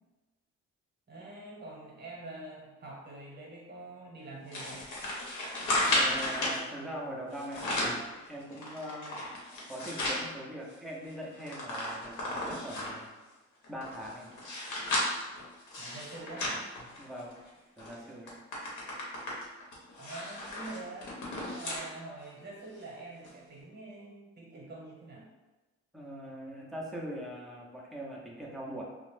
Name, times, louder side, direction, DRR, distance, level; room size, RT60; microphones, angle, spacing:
voice 1, 1.1-4.8 15.8-16.7 20.0-21.1 21.4-25.2, right 2 dB, 35° right, -3 dB, 0.9 m, -45 dB
sound 1, 4.5-6.6 7.3-8.0 8.5-10.2 10.7-10.8 11.0-13.1 13.6-17.4 17.8-18.0 18.3-21.9 22.3-22.4 23.2-23.3, left 1 dB, 75° left, 0.9 m, -34 dB
voice 2, 5.9-9.2 9.7-13.1 13.7-14.3 17.0-17.4 17.8-18.4 25.9-28.8, equal, ahead, -3 dB, 0.5 m, -42 dB
2.4 x 2.0 x 3.2 m, 1.2 s
cardioid pair, 90°, 30 cm